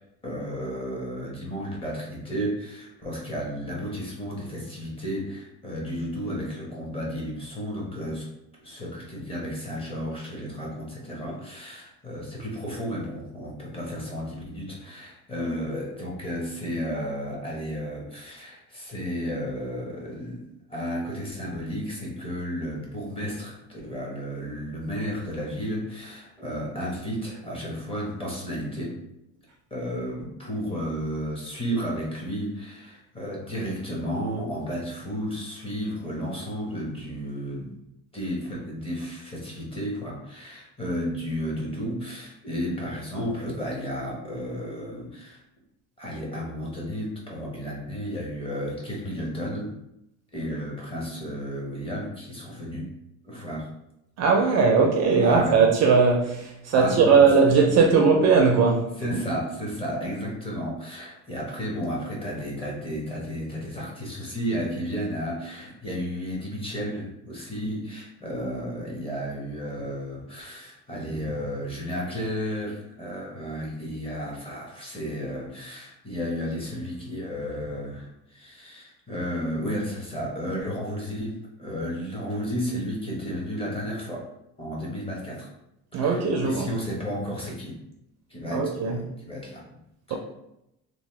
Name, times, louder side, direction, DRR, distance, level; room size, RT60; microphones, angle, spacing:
voice 1, 0.2-8.3 8.6-20.4 20.7-29.0 29.7-37.8 38.1-45.4 46.0-49.7 50.3-52.9 53.2-53.7 55.2-55.6 56.7-57.6 59.0-84.3 84.6-85.5 85.9-87.8 88.3-89.6 90.1-90.2, equal, 15° left, 0.9 m, -33 dB
voice 2, 54.2-58.9 85.9-86.7 88.5-89.0 90.1-90.2, right 5 dB, 45° right, 0.4 m, -19 dB
2.8 x 2.1 x 3.1 m
cardioid pair, 135°, 36 cm